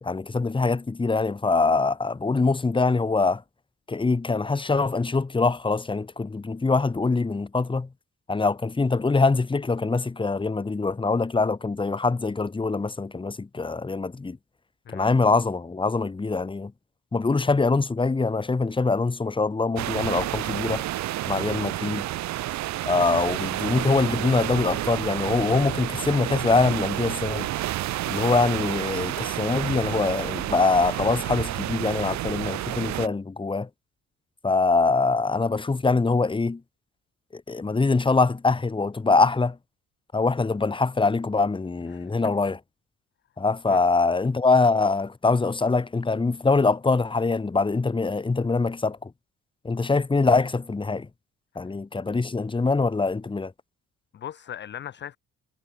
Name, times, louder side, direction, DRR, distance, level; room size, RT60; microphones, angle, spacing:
voice 1, 0.0-3.4 3.9-7.9 8.3-14.4 14.9-16.7 17.1-20.8 21.3-22.1 22.9-27.5 28.1-33.7 34.4-36.6 37.3-39.6 40.1-42.6 43.4-49.1 49.6-51.1 51.6-53.5, left 3 dB, 15° left, 1.0 m, -23 dB
sound 1, 19.8-33.1, right 15 dB, 65° right, 0.6 m, -30 dB
voice 2, 54.1-55.2, left 10 dB, 35° left, 0.5 m, -38 dB
cardioid pair, 90°, 30 cm